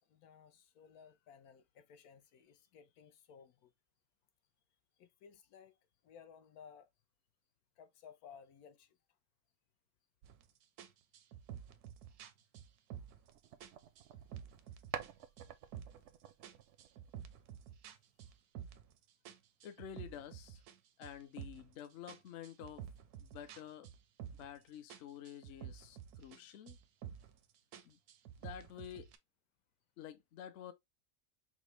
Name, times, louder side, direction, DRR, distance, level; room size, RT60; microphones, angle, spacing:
voice 1, 0.0-3.7 5.0-6.9 7.8-9.0 13.0-13.1 14.2-14.3 15.2-15.3 26.4-26.5, left 7 dB, 80° left, 1.1 m, -59 dB
sound 1, 10.2-10.4 10.8-13.3 13.6-15.1 15.4-16.1 16.4-18.9 19.3-21.7 22.1-24.6 24.9-26.4 26.7-27.4 27.7-29.2, right 9 dB, 85° right, 1.1 m, -50 dB
sound 2, 13.3-14.6 14.9-17.5, right 9 dB, 65° right, 0.7 m, -49 dB
voice 2, 19.6-20.6 21.0-22.9 23.2-23.9 24.3-26.8 27.8-28.0 28.4-29.1 30.0-30.7, left 10 dB, 60° left, 0.8 m, -50 dB
5.0 x 2.2 x 3.1 m
omnidirectional pair, 1.6 m